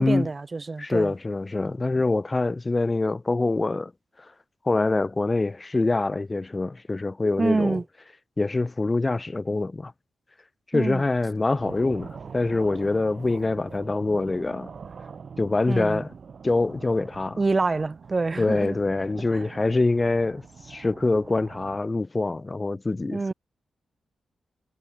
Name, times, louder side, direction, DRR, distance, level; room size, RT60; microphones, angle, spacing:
voice 1, 0.0-1.1 7.4-7.8 10.7-11.0 15.7-16.0 17.4-18.8 19.3-19.4 23.1-23.3, right 3 dB, 25° right, 1.6 m, -26 dB
voice 2, 0.8-3.9 4.7-7.8 8.4-9.9 10.7-14.7 15.4-16.1 16.4-17.4 18.4-20.4 20.7-23.3, left 3 dB, 20° left, 0.5 m, -25 dB
sound 1, 11.5-21.8, right 6 dB, 50° right, 4.6 m, -44 dB
wide cardioid pair, 135°, 0 cm